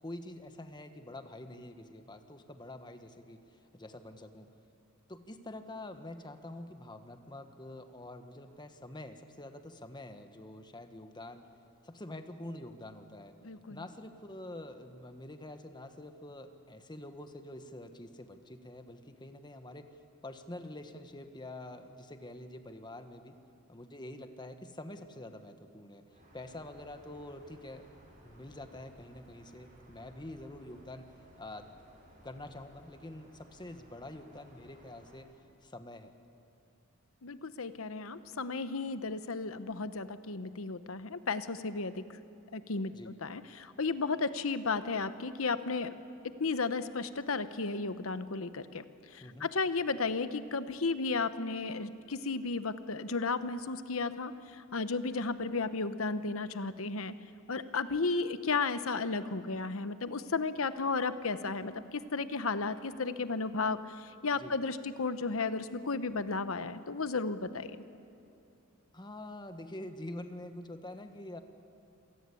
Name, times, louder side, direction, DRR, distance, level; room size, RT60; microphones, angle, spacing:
voice 1, 0.0-4.5 5.1-11.5 11.8-13.3 13.7-19.9 20.2-23.4 23.7-26.0 26.3-27.9 28.2-31.8 32.2-35.3 35.6-36.1 42.9-43.1 49.2-49.5 64.4-64.6 68.9-71.4, left 1 dB, 20° left, 7 dB, 1.3 m, -46 dB
voice 2, 13.4-13.8 37.2-42.0 42.5-46.0 46.2-48.8 49.1-57.1 57.5-67.8, left 4 dB, 75° left, 12 dB, 1.0 m, -34 dB
sound 1, 26.1-35.2, equal, 40° right, 7.9 m, -59 dB
27.0 x 18.0 x 8.5 m, 2.7 s
head